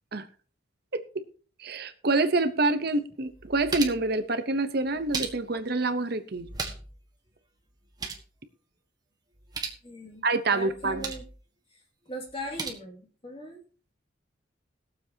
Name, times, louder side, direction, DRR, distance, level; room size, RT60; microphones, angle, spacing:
voice 1, 1.6-6.5 10.2-11.0, right 3 dB, 55° right, 10 dB, 0.8 m, -26 dB
sound 1, 2.7-2.8 3.2-4.1 4.8-5.7 6.3-7.0 7.3-7.4 7.7-8.3 9.3-9.8 10.7-11.3 12.3-12.7, right 4 dB, 20° right, 1.5 m, -37 dB
voice 2, 9.8-10.3 10.5-11.2 11.7-11.8 12.1-13.6, equal, 30° left, 1 dB, 2.4 m, -39 dB
21.0 x 7.4 x 2.8 m, 0.42 s
head